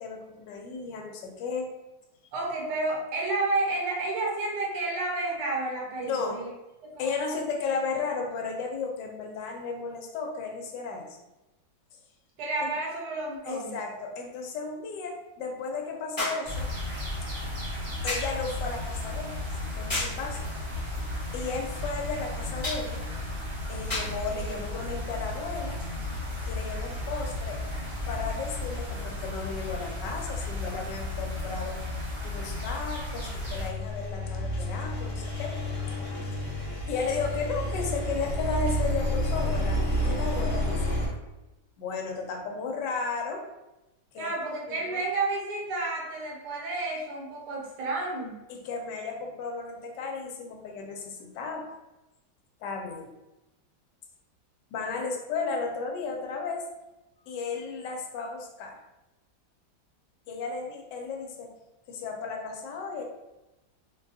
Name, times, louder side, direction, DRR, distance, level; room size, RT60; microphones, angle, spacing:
voice 1, 0.0-1.7 6.0-6.4 7.0-11.1 12.6-12.7 13.5-16.7 18.0-19.4 19.8-20.5 21.3-23.1 23.7-25.8 26.5-27.6 28.1-31.8 32.2-35.6 36.9-41.0 41.8-43.5 44.1-44.3 44.7-45.0 48.5-51.7 52.6-53.1 54.7-56.6 57.3-58.8 60.3-61.5 61.9-63.0, left 4 dB, 75° left, 2 dB, 1.2 m, -34 dB
voice 2, 2.3-6.5 6.8-7.3 12.4-13.8 44.2-48.4, right 2 dB, 70° right, -2 dB, 1.2 m, -31 dB
sound 1, 12.4-12.5 16.2-16.5 18.1-18.4 19.9-20.2 22.6-22.9 23.9-24.2 25.2-25.4, left 2 dB, 20° left, 0.6 m, -31 dB
sound 2, 16.4-33.7, left 2 dB, 45° right, 0.9 m, -34 dB
Engine, 33.4-41.1, equal, 50° left, 1.1 m, -30 dB
3.8 x 2.2 x 2.6 m, 1.0 s
omnidirectional pair, 2.0 m